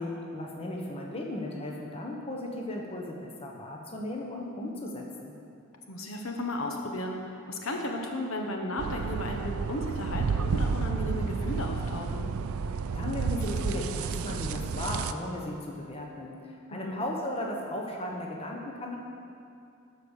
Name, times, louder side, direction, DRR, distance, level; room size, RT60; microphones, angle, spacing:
voice 1, 0.0-5.3 12.9-19.0, left 1 dB, 25° left, 0 dB, 1.0 m, -36 dB
voice 2, 5.9-12.3 16.7-17.0, left 1 dB, 65° left, 2 dB, 1.0 m, -34 dB
sound 1, 8.8-15.1, right 5 dB, 80° right, 0.4 m, -31 dB
12.5 x 5.1 x 6.4 m, 2.6 s
head